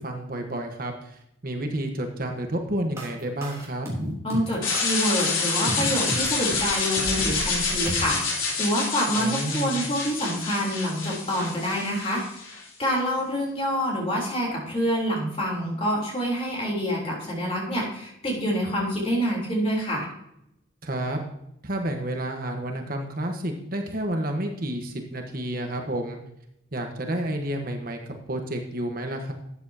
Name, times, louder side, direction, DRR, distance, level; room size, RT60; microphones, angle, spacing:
voice 1, 0.0-3.9 9.1-9.8 20.8-21.2 21.6-26.2 26.7-29.3, right 1 dB, 45° right, 3 dB, 1.3 m, -30 dB
sound 1, 3.0-8.0, equal, 15° right, 3.3 m, -33 dB
voice 2, 4.2-12.4 12.8-20.1, equal, 30° left, -3 dB, 3.6 m, -27 dB
sound 2, 4.6-12.6, left 4 dB, 80° left, 3.8 m, -28 dB
13.0 x 8.8 x 2.9 m, 0.80 s
head